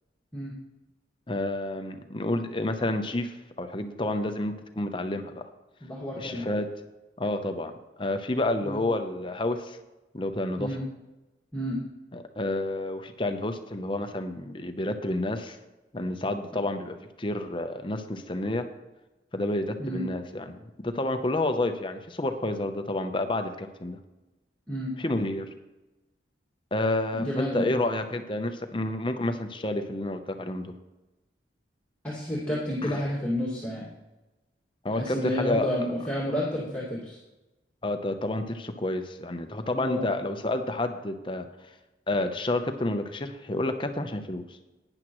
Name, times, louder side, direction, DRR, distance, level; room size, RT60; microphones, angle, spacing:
voice 1, 1.3-5.5 6.2-6.7 7.2-7.7 8.0-9.8 10.1-10.7 12.1-15.6 15.9-18.6 19.3-24.0 25.0-25.5 26.7-30.7 32.8-33.0 34.8-35.8 37.8-41.5 42.1-44.4, left 2 dB, 25° left, 7 dB, 0.7 m, -29 dB
voice 2, 5.8-6.5 8.6-8.8 10.6-10.8 11.5-11.8 19.8-20.0 24.7-24.9 27.1-27.7 32.0-33.8 34.9-37.2 39.8-40.1, equal, 10° left, -8 dB, 2.2 m, -30 dB
12.5 x 9.9 x 3.1 m, 1.0 s
head